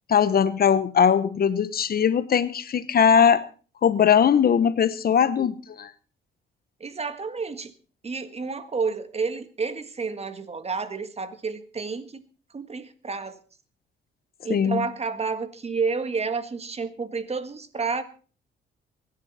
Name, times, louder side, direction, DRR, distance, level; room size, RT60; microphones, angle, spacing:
voice 1, 0.1-3.4 3.8-5.9 14.5-14.8, left 7 dB, 50° left, 1.1 m, -20 dB
voice 2, 6.8-7.7 8.0-12.2 12.5-13.4 14.4-18.0, right 4 dB, 30° right, 1.8 m, -30 dB
24.0 x 10.5 x 4.2 m
cardioid pair, 90°, 20 cm